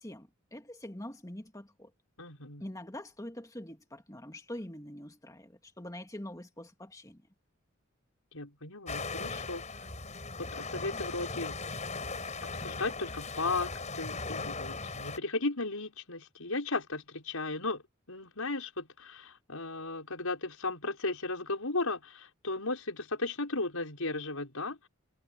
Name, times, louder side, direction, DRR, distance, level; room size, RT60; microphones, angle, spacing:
voice 1, 0.0-1.9 2.6-7.2, left 1 dB, 15° left, 2.2 m, -44 dB
voice 2, 2.2-2.6 8.3-9.6 10.4-11.6 12.4-17.8 18.1-24.9, left 3 dB, 85° left, 5.9 m, -35 dB
sound 1, 8.9-15.2, left 3 dB, 35° left, 7.0 m, -38 dB
head